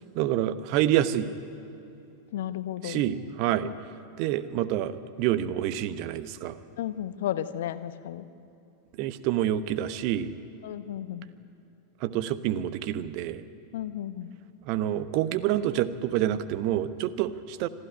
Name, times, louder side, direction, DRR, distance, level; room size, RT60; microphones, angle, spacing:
voice 1, 0.1-1.3 2.8-3.7 4.2-6.6 9.0-10.3 12.0-13.4 14.6-17.7, right 12 dB, 45° right, 14 dB, 1.0 m, -27 dB
voice 2, 2.3-3.0 3.6-3.7 6.8-8.2 10.6-11.3 13.7-14.3, left 11 dB, 55° left, 13 dB, 0.9 m, -33 dB
25.0 x 14.0 x 9.9 m, 2.8 s
figure-of-eight pair, 90°, 0 cm